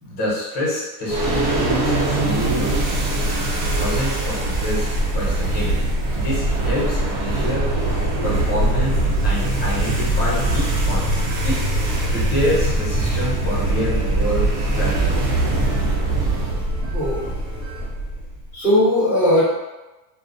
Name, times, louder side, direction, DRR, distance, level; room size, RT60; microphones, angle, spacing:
voice 1, 0.0-2.7 3.7-4.9 5.1-5.7 6.1-7.7 8.2-8.9 9.2-11.6 12.1-15.1, equal, 20° left, -6 dB, 0.8 m, -27 dB
sound 1, 1.1-18.4, right 2 dB, 70° right, 0.8 m, -22 dB
sound 2, 7.5-13.2, left 1 dB, 55° left, 0.6 m, -29 dB
sound 3, 10.2-17.9, equal, 35° right, 0.5 m, -39 dB
voice 2, 16.9-17.3 18.5-19.4, left 1 dB, 10° right, -11 dB, 0.9 m, -18 dB
2.3 x 2.1 x 2.5 m, 1.1 s
supercardioid pair, 160°, 49 cm